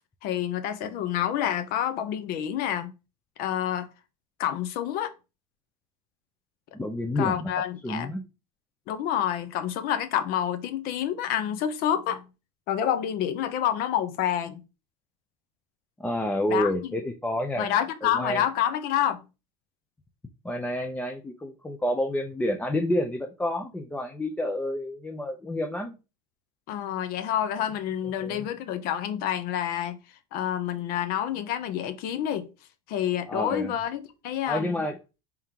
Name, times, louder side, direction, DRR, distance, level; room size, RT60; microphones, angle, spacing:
voice 1, 0.2-2.9 3.4-3.9 4.4-5.1 7.2-8.1 8.9-12.2 12.7-14.6 16.5-16.7 17.6-19.2 26.7-30.0 30.3-32.5 32.9-34.8, left 10 dB, 55° left, 0.7 m, -28 dB
voice 2, 6.7-7.5 7.8-8.2 16.0-17.7 18.0-18.4 20.4-26.0 28.2-28.5 33.3-33.8 34.5-35.0, left 1 dB, 10° left, 0.5 m, -29 dB
3.5 x 3.5 x 2.8 m
supercardioid pair, 110°, 19 cm